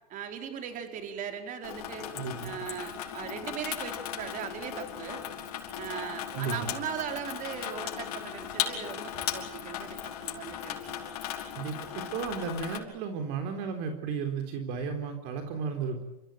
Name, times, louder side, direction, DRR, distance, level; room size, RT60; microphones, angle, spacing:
voice 1, 0.1-2.1 2.4-5.2 5.8-10.8, right 8 dB, 40° right, 5 dB, 4.5 m, -38 dB
Water tap faucet / Sink (filling or washing), 1.6-12.8, left 10 dB, 75° left, 5.2 m, -37 dB
voice 2, 2.1-2.5 6.3-6.7 11.6-16.0, right 5 dB, 60° right, 5 dB, 3.7 m, -34 dB
29.5 x 15.5 x 9.4 m, 0.92 s
supercardioid pair, 115°, 20 cm